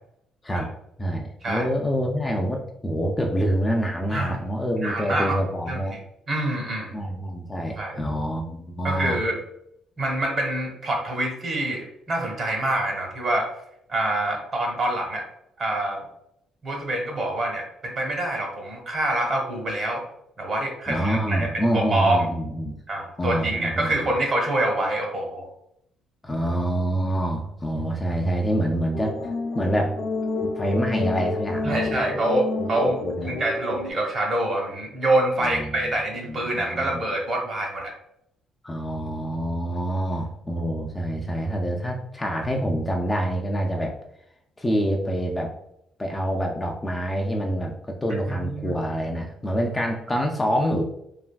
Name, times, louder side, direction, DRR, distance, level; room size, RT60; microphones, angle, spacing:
voice 1, 1.0-6.0 6.9-9.2 20.9-22.8 23.2-24.1 26.2-29.2 29.5-30.0 30.4-31.9 32.6-33.3 35.4-35.9 36.3-37.0 38.6-43.9 44.6-45.5 46.0-50.8, equal, 15° left, 1 dB, 0.3 m, -26 dB
voice 2, 4.1-4.4 4.8-5.4 5.7-6.0 6.3-7.0 7.8-8.0 8.8-9.4 10.0-13.5 13.9-15.3 15.6-16.0 16.6-20.0 20.4-21.5 21.7-22.2 22.9-25.5 31.6-33.0 33.2-37.9 48.3-48.8, right 1 dB, 40° right, 1 dB, 0.9 m, -26 dB
sound 1, 28.9-33.9, left 3 dB, 65° left, 0.5 m, -29 dB
3.3 x 2.4 x 2.2 m, 0.76 s
cardioid pair, 125°, 0 cm